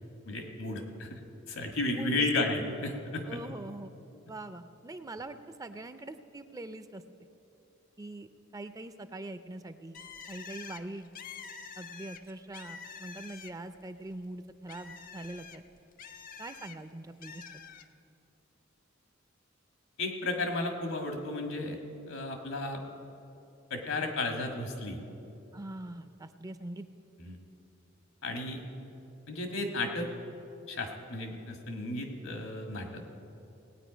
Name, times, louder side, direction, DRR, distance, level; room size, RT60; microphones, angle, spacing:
voice 1, 0.2-1.2 1.5-3.4 20.0-21.8 22.1-22.8 23.7-25.0 27.2-27.4 28.2-28.6 29.3-30.1 30.7-33.0, left 2 dB, 85° left, 3 dB, 1.6 m, -33 dB
voice 2, 1.9-2.4 3.3-3.9 4.3-7.0 8.0-10.0 10.3-11.1 11.8-15.6 16.4-17.6 25.5-26.9, right 2 dB, 20° right, 10 dB, 0.4 m, -43 dB
Bird, 9.9-13.8 14.1-16.8 17.2-17.9, left 6 dB, 45° left, 0.6 m, -47 dB
18.5 x 9.0 x 5.0 m, 2.8 s
head